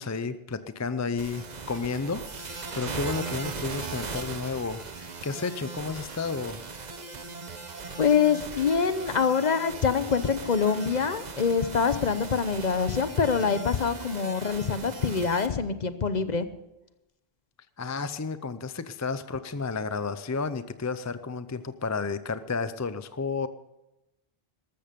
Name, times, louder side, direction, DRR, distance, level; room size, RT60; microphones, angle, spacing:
voice 1, 0.0-6.6 17.8-23.5, left 4 dB, 25° left, 13 dB, 0.4 m, -32 dB
sound 1, 1.2-15.5, right 4 dB, 45° right, 1.1 m, -39 dB
voice 2, 8.0-16.5, left 6 dB, 45° left, 12 dB, 0.9 m, -25 dB
13.5 x 13.5 x 5.2 m, 0.92 s
omnidirectional pair, 1.0 m